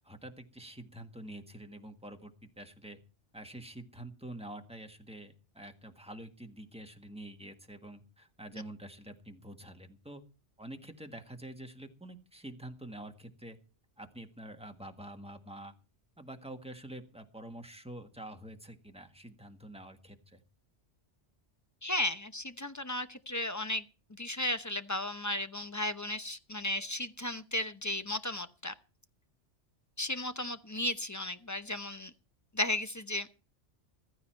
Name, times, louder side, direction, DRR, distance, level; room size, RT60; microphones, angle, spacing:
voice 1, 0.0-3.0 3.3-10.2 10.6-13.6 14.0-15.7 16.2-20.4, right 1 dB, 5° right, 5 dB, 1.6 m, -47 dB
voice 2, 21.8-23.8 24.2-28.7 30.0-32.1 32.5-33.3, left 1 dB, 20° left, 11 dB, 0.7 m, -34 dB
15.0 x 14.0 x 4.5 m, 0.34 s
omnidirectional pair, 1.2 m